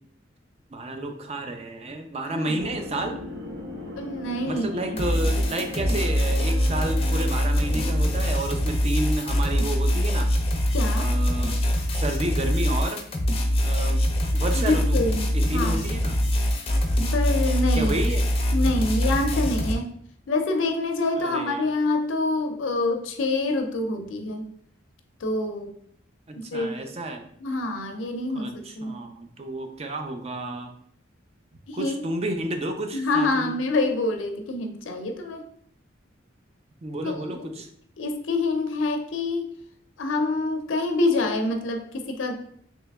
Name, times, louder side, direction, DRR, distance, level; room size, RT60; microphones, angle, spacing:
voice 1, 0.7-3.2 4.5-10.3 11.0-11.6 11.9-13.0 13.6-14.0 14.3-15.0 15.3-16.2 17.7-18.2 21.2-21.7 26.3-27.2 28.3-30.7 31.7-33.5 36.8-37.7, right 1 dB, 30° right, 5 dB, 0.4 m, -31 dB
sound 1, 2.6-8.3, left 1 dB, 75° right, 0.9 m, -37 dB
voice 2, 4.0-4.8 10.7-11.1 14.5-15.8 17.0-17.9 18.5-19.9 20.3-24.5 25.2-25.7 26.4-26.8 27.4-29.0 31.7-32.0 32.9-35.4 37.0-37.5 38.0-39.5 40.0-42.3, left 2 dB, 80° left, 5 dB, 0.5 m, -26 dB
sound 2, 5.0-19.7, equal, 30° left, 0.5 m, -23 dB
3.2 x 2.9 x 3.4 m, 0.63 s
head